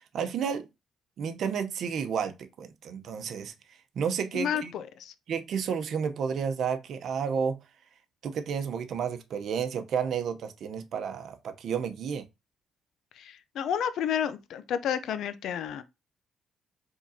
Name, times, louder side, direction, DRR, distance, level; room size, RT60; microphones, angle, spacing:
voice 1, 0.1-0.7 1.2-4.7 5.3-7.6 8.2-12.3, right 7 dB, 70° right, 0.8 m, -31 dB
voice 2, 4.3-5.1 13.2-15.8, left 8 dB, 75° left, 0.5 m, -31 dB
4.7 x 3.7 x 2.7 m
cardioid pair, 90°, 0 cm